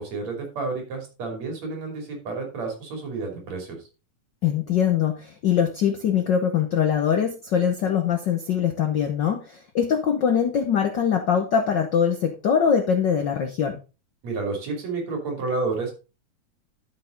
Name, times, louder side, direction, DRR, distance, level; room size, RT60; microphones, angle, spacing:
voice 1, 0.0-3.8 14.2-15.9, right 3 dB, 65° right, 2 dB, 4.2 m, -30 dB
voice 2, 4.4-13.8, left 8 dB, 85° left, 5 dB, 0.9 m, -22 dB
12.0 x 6.1 x 3.9 m, 0.31 s
omnidirectional pair, 3.4 m